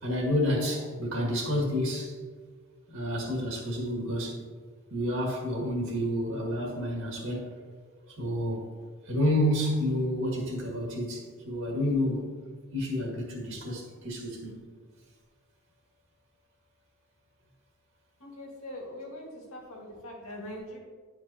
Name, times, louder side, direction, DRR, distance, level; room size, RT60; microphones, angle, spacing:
voice 1, 0.0-2.2 2.9-4.4 4.9-7.6 8.1-8.6 9.1-12.2 12.7-14.6, left 1 dB, 65° right, -2 dB, 1.8 m, -29 dB
voice 2, 18.2-20.8, left 1 dB, 80° left, -2 dB, 1.8 m, -42 dB
10.5 x 4.7 x 2.8 m, 1.5 s
head